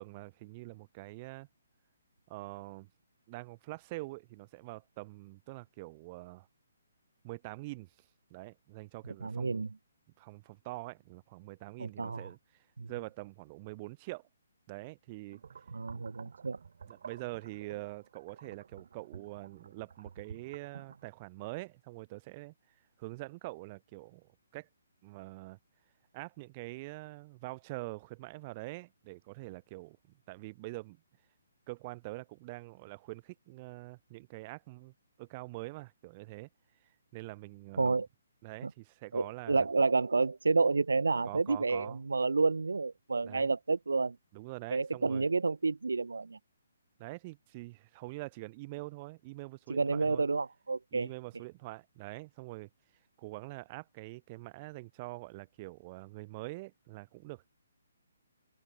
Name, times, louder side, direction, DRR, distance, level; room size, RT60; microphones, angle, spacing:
voice 1, 0.0-1.5 2.3-2.9 3.3-6.5 7.2-7.9 8.3-9.6 10.2-14.3 14.7-15.4 16.0-16.1 16.9-22.5 23.0-24.7 25.0-25.6 26.1-30.0 30.3-31.0 31.7-36.5 37.1-38.0 38.4-39.7 41.2-42.0 43.2-43.5 44.3-45.3 47.0-50.3 50.9-52.7 53.2-57.5, right 22 dB, 30° right, 4.7 m, -45 dB
voice 2, 9.2-9.7 11.8-12.3 12.8-12.9 15.7-16.6 37.8-38.1 38.6-38.7 39.1-44.2 44.7-46.4 49.7-51.1, right 4 dB, 75° right, 0.3 m, -30 dB
sound 1, 15.3-21.1, right 6 dB, 60° right, 1.7 m, -52 dB
open air
figure-of-eight pair, 135°, 0 cm